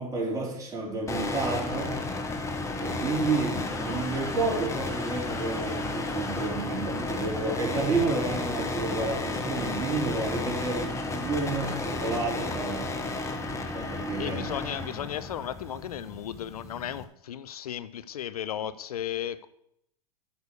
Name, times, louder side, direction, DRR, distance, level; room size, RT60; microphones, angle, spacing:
voice 1, 0.0-2.0 2.8-13.0 13.7-14.6, right 3 dB, 20° right, 4.6 m, -30 dB
sound 1, 1.1-17.0, left 2 dB, 15° left, 1.4 m, -33 dB
voice 2, 14.2-19.5, left 10 dB, 80° left, 0.6 m, -35 dB
9.8 x 6.2 x 6.9 m
hypercardioid pair, 105°, 19 cm